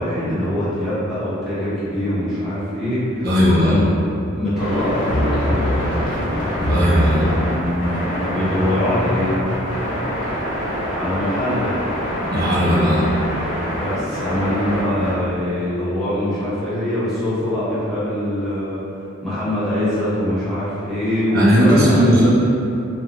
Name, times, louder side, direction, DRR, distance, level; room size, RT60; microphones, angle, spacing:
voice 1, 0.0-3.3 3.6-3.9 4.3-5.8 8.2-9.4 10.9-11.7 13.8-18.8 19.2-22.3, left 1 dB, ahead, -13 dB, 0.7 m, -23 dB
voice 2, 3.2-3.8 6.7-7.3 12.3-13.0 21.3-22.3, equal, 50° right, -9 dB, 0.6 m, -16 dB
sound 1, 4.6-15.1, equal, 70° left, 1.0 m, -26 dB
sound 2, 5.0-10.0, equal, 40° left, 0.4 m, -24 dB
2.5 x 2.2 x 2.9 m, 2.8 s
head